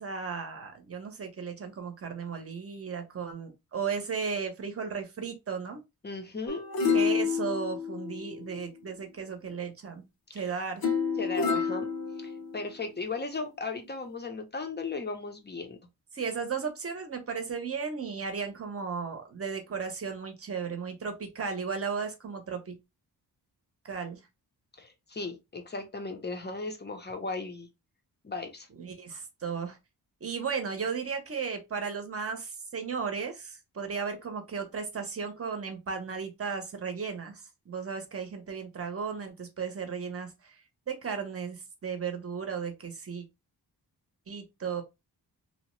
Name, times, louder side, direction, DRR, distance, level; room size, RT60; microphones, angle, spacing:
voice 1, 0.0-5.8 6.9-10.0 10.3-10.8 16.1-22.7 23.8-24.2 28.8-29.8 30.2-40.6 40.9-43.2 44.3-44.8, right 5 dB, 35° right, 0.7 m, -35 dB
voice 2, 6.0-7.0 10.4-10.5 11.2-11.9 12.2-15.8 24.8-27.7 28.2-28.7, left 3 dB, 25° left, 0.6 m, -36 dB
sound 1, 6.5-8.8 10.8-12.8 13.4-13.5, left 6 dB, 60° left, 0.7 m, -29 dB
2.8 x 2.0 x 3.0 m
wide cardioid pair, 125°, 40 cm